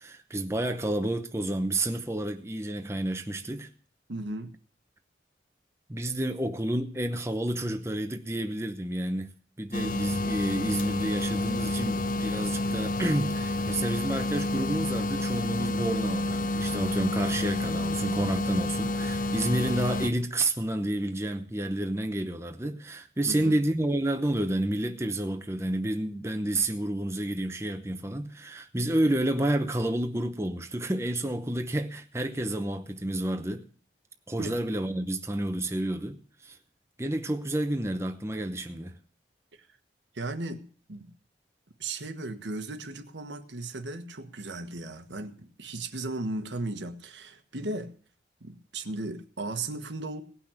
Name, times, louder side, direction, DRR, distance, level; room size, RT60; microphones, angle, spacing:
voice 1, 0.0-3.7 5.9-9.3 9.6-33.7 34.3-36.2 36.4-36.6 37.0-39.0, right 1 dB, 15° right, 0.8 m, -30 dB
voice 2, 4.1-4.5 23.3-23.6 34.4-34.6 40.1-41.1 41.8-47.9 48.4-50.2, right 2 dB, 80° right, 1.3 m, -36 dB
sound 1, 9.7-20.1, left 2 dB, 45° left, 0.6 m, -29 dB
18.0 x 6.0 x 8.6 m
head